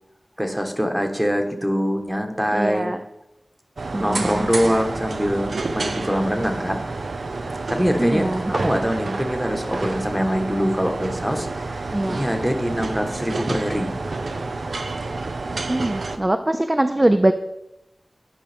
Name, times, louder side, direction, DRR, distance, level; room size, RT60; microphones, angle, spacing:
voice 1, 0.4-2.9 4.0-7.0 7.7-8.3 8.5-13.9, equal, 10° right, 4 dB, 1.1 m, -24 dB
voice 2, 2.5-3.0 3.9-4.5 8.0-8.7 11.9-12.2 15.7-17.3, right 1 dB, 30° right, 8 dB, 0.4 m, -22 dB
sound 1, 3.8-16.2, right 3 dB, 85° right, 0.5 m, -29 dB
11.0 x 4.8 x 3.4 m, 0.87 s
wide cardioid pair, 50°, 0 cm